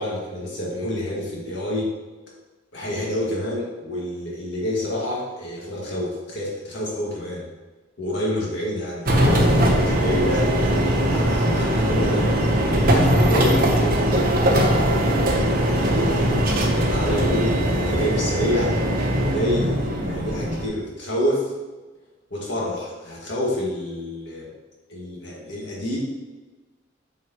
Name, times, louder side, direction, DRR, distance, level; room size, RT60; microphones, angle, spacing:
voice 1, 0.0-1.9 2.7-7.5 8.0-12.3 12.9-18.8 19.2-21.5 22.3-24.5 24.9-26.0, left 1 dB, 65° left, -5 dB, 2.0 m, -28 dB
sound 1, 9.1-20.7, right 1 dB, 50° right, 1.0 m, -20 dB
7.8 x 4.7 x 3.0 m, 1.2 s
head